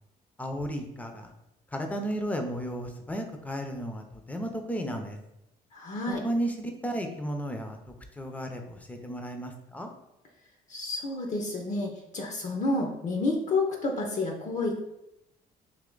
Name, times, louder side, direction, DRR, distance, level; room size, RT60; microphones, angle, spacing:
voice 1, 0.4-1.3 1.7-5.2 6.1-9.9, equal, 10° left, 4 dB, 0.6 m, -34 dB
voice 2, 5.7-6.2 10.7-14.8, left 2 dB, 45° left, 2 dB, 0.7 m, -30 dB
3.4 x 2.9 x 3.8 m, 0.85 s
cardioid pair, 110°, 17 cm